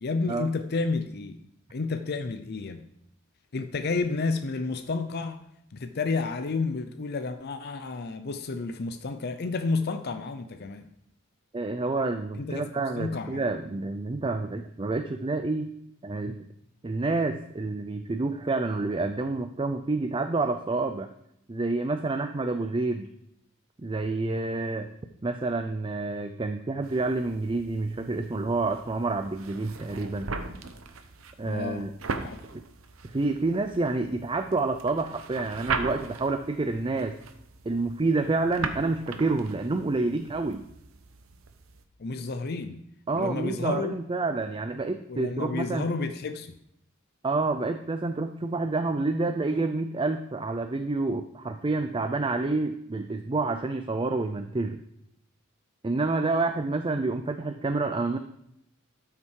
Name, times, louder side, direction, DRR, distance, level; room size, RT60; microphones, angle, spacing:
voice 1, 0.0-1.4 1.7-2.8 3.5-5.4 5.7-10.9 12.4-12.6 13.0-13.4 31.4-31.9 32.2-32.4 42.0-42.8 43.2-44.0 45.1-46.6, left 3 dB, 50° left, 8 dB, 0.6 m, -31 dB
voice 2, 11.5-15.7 16.0-16.4 16.8-21.1 21.5-23.1 23.8-24.9 25.2-30.3 31.4-31.9 32.5-32.6 33.0-37.2 37.6-40.6 43.1-45.9 47.2-54.8 55.8-58.2, right 3 dB, 25° right, 8 dB, 0.5 m, -28 dB
sound 1, 26.8-41.9, right 4 dB, 85° right, 0.9 m, -39 dB
12.5 x 5.9 x 4.7 m, 0.77 s
head